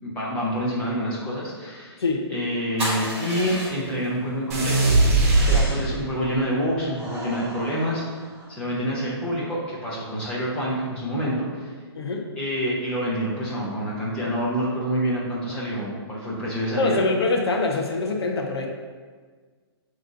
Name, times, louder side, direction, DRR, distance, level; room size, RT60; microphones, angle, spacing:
voice 1, 0.0-2.0 2.3-4.9 5.4-8.2 8.5-11.7 12.4-17.0, equal, 10° left, -6 dB, 0.8 m, -27 dB
sound 1, 2.8-4.1 5.1-6.0 6.9-8.6, equal, 10° right, 1.3 m, -34 dB
sound 2, 4.5-6.3, right 2 dB, 35° right, 1.4 m, -19 dB
voice 2, 5.4-5.7 12.0-12.3 16.8-18.7, left 3 dB, 70° left, 2 dB, 0.9 m, -24 dB
7.6 x 3.1 x 3.9 m, 1.5 s
hypercardioid pair, 180°, 14 cm